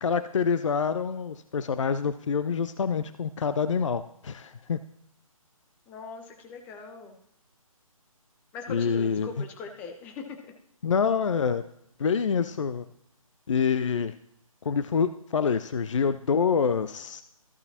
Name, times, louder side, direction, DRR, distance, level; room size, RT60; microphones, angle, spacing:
voice 1, 0.0-4.8 8.7-9.4 10.8-11.6 12.0-12.8 13.5-14.1 14.6-17.2, left 6 dB, 60° left, 12 dB, 0.4 m, -26 dB
voice 2, 5.9-7.2 8.5-10.5, left 5 dB, 10° left, 4 dB, 0.6 m, -41 dB
14.5 x 6.6 x 2.8 m, 0.77 s
figure-of-eight pair, 145°, 18 cm